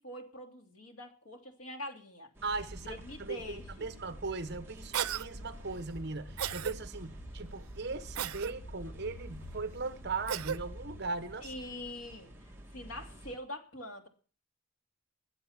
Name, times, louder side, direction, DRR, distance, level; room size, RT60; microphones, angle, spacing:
voice 1, 0.0-2.3 2.8-3.9 11.4-14.1, left 1 dB, 70° left, 2.8 m, -44 dB
sound 1, 2.3-13.4, right 1 dB, 10° right, 1.6 m, -52 dB
sound 2, 2.4-11.0, equal, 50° left, 1.2 m, -49 dB
voice 2, 2.4-11.5, right 3 dB, 50° right, 1.0 m, -39 dB
Cough, 4.9-5.3 6.4-6.7 8.2-8.5 10.3-10.6, right 9 dB, 85° right, 0.6 m, -34 dB
21.5 x 8.0 x 5.8 m
head